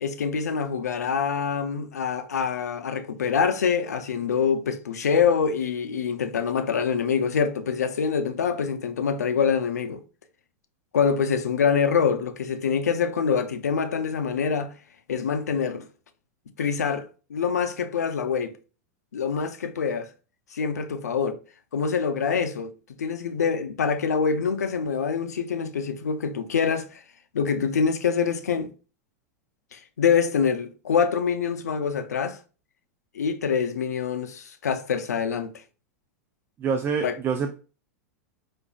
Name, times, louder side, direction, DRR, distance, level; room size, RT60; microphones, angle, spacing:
voice 1, 0.0-10.0 10.9-14.7 15.1-15.9 16.6-18.5 19.1-20.1 20.5-21.4 21.7-22.7 23.0-27.0 27.3-28.7 29.7-32.4 33.1-35.5 37.0-37.2, left 6 dB, 85° left, 0.5 m, -25 dB
voice 2, 36.6-37.5, right 6 dB, 25° right, 0.4 m, -26 dB
4.8 x 2.5 x 2.3 m
hypercardioid pair, 105°, 9 cm